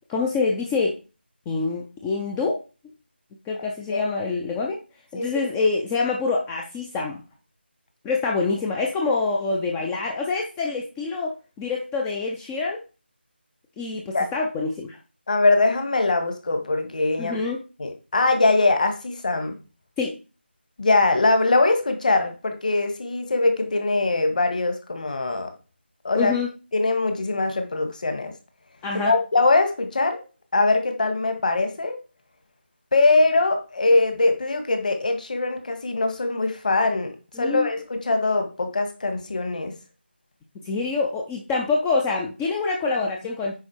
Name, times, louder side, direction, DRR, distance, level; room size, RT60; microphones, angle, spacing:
voice 1, 0.1-1.0 1.5-2.6 3.5-4.8 5.1-7.2 8.0-12.8 13.8-15.0 17.2-17.6 20.0-20.2 26.1-26.5 28.8-29.1 37.4-37.7 40.6-43.5, left 4 dB, 5° left, 0 dB, 0.4 m, -26 dB
voice 2, 15.3-17.4 17.8-19.5 20.8-25.5 26.0-26.3 26.7-28.3 29.0-30.2 30.5-32.0 32.9-39.7, left 3 dB, 45° left, 6 dB, 2.1 m, -22 dB
9.5 x 5.0 x 4.9 m, 0.33 s
figure-of-eight pair, 165°, 6 cm